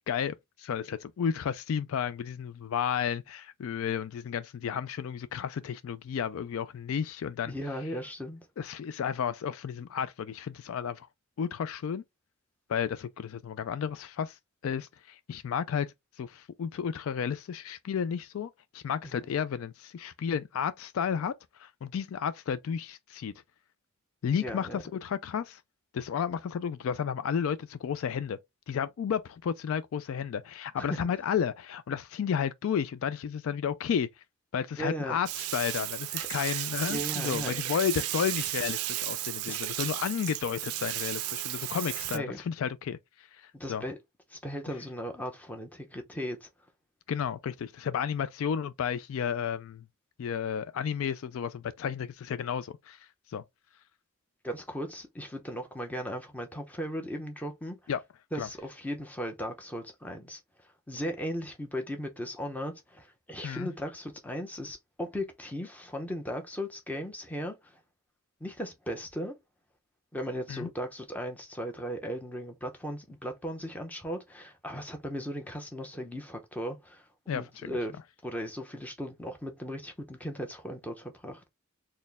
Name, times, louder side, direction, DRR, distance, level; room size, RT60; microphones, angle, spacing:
voice 1, 0.1-7.5 8.6-11.1 11.4-12.0 12.7-14.4 14.6-15.9 16.2-23.3 24.2-25.6 25.9-28.4 28.7-34.1 34.5-43.8 47.1-49.8 50.2-53.4 57.9-58.0 58.4-58.5 63.4-63.7 70.5-70.7 77.3-77.4, left 7 dB, 60° left, 0.3 m, -32 dB
voice 2, 7.5-8.4 19.0-19.1 24.4-24.8 30.8-31.0 34.8-35.2 36.1-36.3 36.9-37.6 39.5-39.6 41.8-42.4 43.5-44.0 44.3-46.5 54.4-57.8 58.3-60.4 60.9-67.8 68.4-69.4 70.1-81.4, equal, 5° left, 0.7 m, -37 dB
Bathtub (filling or washing), 35.3-42.2, right 15 dB, 75° right, 0.4 m, -34 dB
4.3 x 2.2 x 3.4 m
head